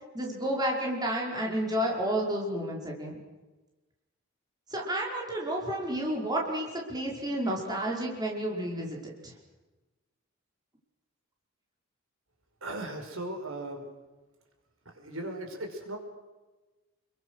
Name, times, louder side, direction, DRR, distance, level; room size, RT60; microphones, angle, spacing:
voice 1, 0.1-3.1 4.7-9.0 9.2-9.3, right 1 dB, 20° right, -1 dB, 5.3 m, -31 dB
voice 2, 12.6-13.9 14.9-16.0, right 1 dB, 70° right, 3 dB, 5.4 m, -37 dB
30.0 x 23.0 x 6.6 m, 1.2 s
head